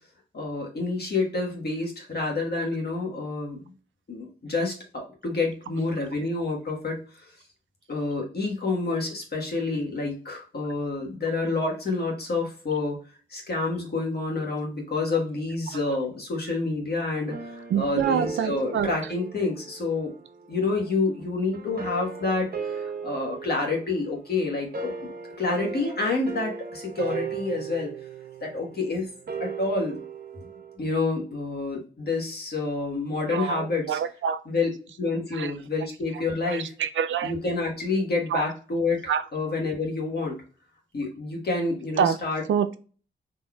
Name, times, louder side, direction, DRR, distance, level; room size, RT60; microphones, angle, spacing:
voice 1, 0.3-3.6 4.1-7.3 7.9-13.0 13.3-20.1 20.5-25.1 25.4-27.9 28.4-29.1 29.4-30.0 30.8-34.0 34.4-34.7 35.0-36.7 37.2-40.4 40.9-42.4, left 3 dB, 50° left, 1.4 m, -28 dB
sound 1, 17.2-20.2 21.5-30.8, right 5 dB, 50° right, 0.8 m, -36 dB
voice 2, 17.7-18.9 33.3-34.4 35.3-35.5 36.5-37.3 38.3-38.4 39.1-39.2 42.0-42.2 42.5-42.8, right 8 dB, 70° right, 0.4 m, -26 dB
3.9 x 3.0 x 2.3 m
cardioid pair, 65°, 20 cm